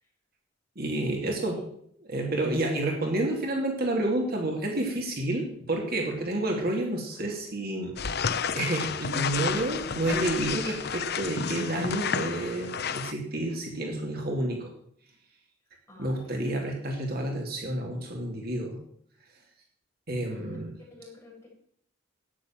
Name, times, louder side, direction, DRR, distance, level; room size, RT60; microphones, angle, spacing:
voice 1, 0.8-1.6 2.1-8.0 8.5-14.7 16.0-18.8 20.1-20.7, right 1 dB, 50° right, 1 dB, 2.7 m, -29 dB
sound 1, 8.0-13.1, left 6 dB, 55° left, 0.7 m, -31 dB
voice 2, 15.9-16.4 20.3-20.6 20.9-21.5, left 2 dB, 15° left, -5 dB, 8.0 m, -49 dB
12.5 x 9.9 x 7.6 m, 0.66 s
head